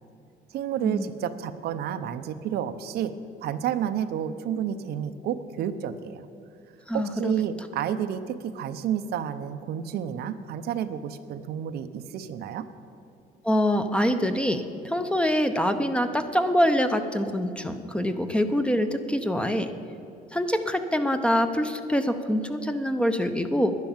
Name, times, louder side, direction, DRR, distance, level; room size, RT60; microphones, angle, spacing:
voice 1, 0.5-3.1 3.4-6.3 6.9-12.7, right 9 dB, 70° right, 10 dB, 0.7 m, -30 dB
voice 2, 6.9-7.3 13.4-19.7 20.3-23.7, equal, 5° left, 8 dB, 0.7 m, -25 dB
10.5 x 10.5 x 7.2 m, 2.7 s
cardioid pair, 110°, 17 cm